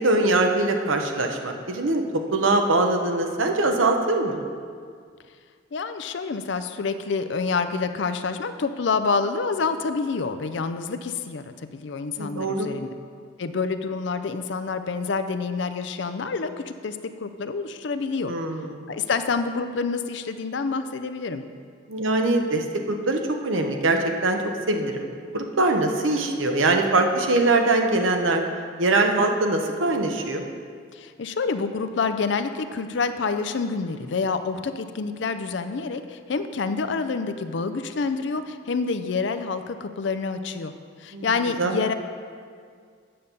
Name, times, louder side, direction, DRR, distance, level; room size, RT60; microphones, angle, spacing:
voice 1, 0.0-2.0 2.3-4.4 12.2-12.7 18.3-18.8 21.9-24.4 24.7-25.1 25.3-28.4 28.8-30.5 41.1-41.3 41.6-41.8, right 2 dB, 85° right, 4 dB, 0.9 m, -22 dB
voice 2, 5.7-12.9 13.4-18.3 18.9-21.4 30.9-40.7 41.0-41.9, left 4 dB, 65° left, 10 dB, 0.5 m, -27 dB
8.6 x 5.3 x 7.0 m, 2.1 s
head